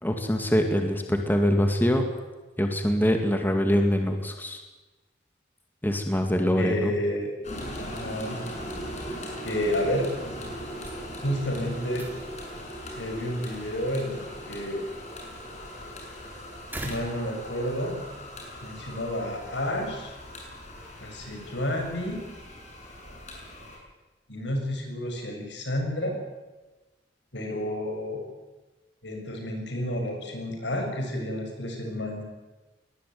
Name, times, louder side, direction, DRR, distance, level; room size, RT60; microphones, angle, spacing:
voice 1, 0.0-2.0 2.6-4.6 5.8-6.9, equal, 10° left, 5 dB, 2.2 m, -24 dB
voice 2, 6.5-7.3 7.8-8.4 9.4-10.4 11.2-12.1 12.9-14.8 16.8-17.9 18.6-20.1 21.0-22.2 24.3-26.2 27.3-28.2 29.0-32.2, equal, 75° left, 3 dB, 7.0 m, -30 dB
sound 1, 7.4-23.8, equal, 40° left, 7.1 m, -39 dB
sound 2, 10.6-18.1, right 1 dB, 10° right, 3.9 m, -46 dB
22.5 x 19.5 x 9.4 m, 1.2 s
head